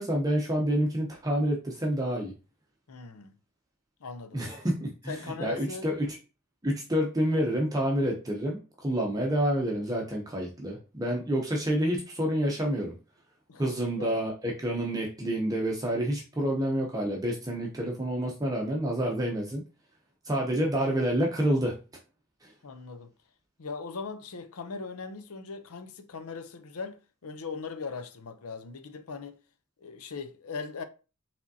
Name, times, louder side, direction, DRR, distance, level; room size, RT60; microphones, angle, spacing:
voice 1, 0.0-2.3 4.3-5.1 5.4-6.2 6.6-12.9 13.6-14.3 14.6-19.6 20.3-21.8, right 1 dB, 15° right, 0.7 m, -28 dB
voice 2, 2.9-3.3 4.0-4.4 5.1-5.9 13.5-14.1 14.7-14.8 22.6-23.1 23.6-29.4 29.8-30.8, left 4 dB, 80° left, 0.6 m, -39 dB
4.9 x 3.4 x 2.7 m
head